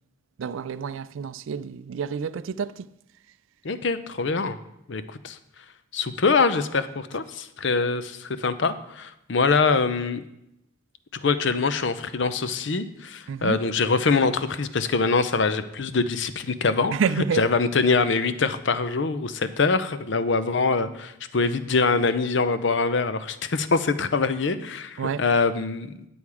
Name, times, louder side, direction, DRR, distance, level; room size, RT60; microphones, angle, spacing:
voice 1, 0.4-2.9 13.3-13.6 16.9-17.4 25.0-25.2, right 6 dB, 75° right, 0.3 m, -28 dB
voice 2, 3.6-4.6 4.9-5.4 5.9-10.2 11.2-16.9 17.3-25.9, left 4 dB, 60° left, 0.6 m, -24 dB
10.5 x 7.0 x 4.8 m
head